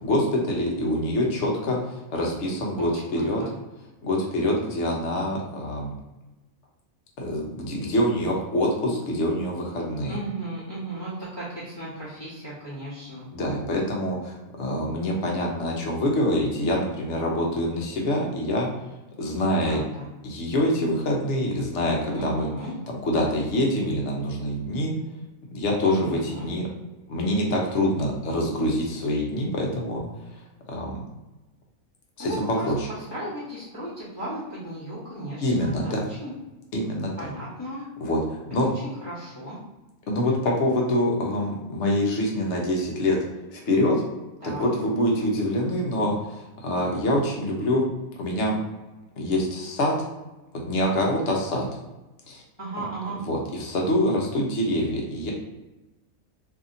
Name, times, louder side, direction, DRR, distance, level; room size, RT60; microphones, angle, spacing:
voice 1, 0.0-3.4 4.0-5.9 7.2-10.1 13.3-18.7 19.2-19.8 20.2-22.5 22.9-24.9 25.5-26.7 27.1-30.0 30.7-31.0 32.2-32.3 32.7-32.9 35.4-36.0 36.7-37.1 38.0-38.7 40.1-43.2 43.5-44.0 44.6-46.4 46.6-47.8 48.2-48.6 49.2-49.9 50.7-51.7 52.3-52.4 53.3-55.3, left 1 dB, 65° left, -1 dB, 1.0 m, -25 dB
voice 2, 2.8-3.6 10.0-13.3 19.6-20.1 22.1-22.7 25.8-26.5 32.2-32.7 33.0-36.3 37.2-37.8 38.6-39.6 44.4-44.7 52.6-53.2, right 1 dB, 25° left, -10 dB, 0.8 m, -35 dB
2.7 x 2.6 x 2.5 m, 1.0 s
omnidirectional pair, 1.4 m